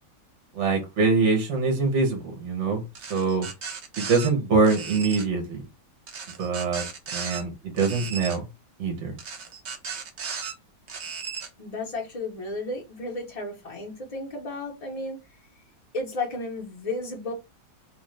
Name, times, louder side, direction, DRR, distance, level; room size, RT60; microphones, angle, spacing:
voice 1, 0.5-2.8 3.1-3.5 4.0-5.6 6.4-6.8 7.1-8.4 8.8-9.1, right 4 dB, 55° right, 0.8 m, -24 dB
sound 1, 2.9-4.3 4.6-5.3 6.1-7.4 7.8-8.4 9.2-10.5 10.9-11.5, right 6 dB, 85° right, 0.5 m, -36 dB
voice 2, 11.6-15.2 15.9-17.3, left 2 dB, 65° left, 0.3 m, -33 dB
3.1 x 2.1 x 3.1 m
omnidirectional pair, 1.9 m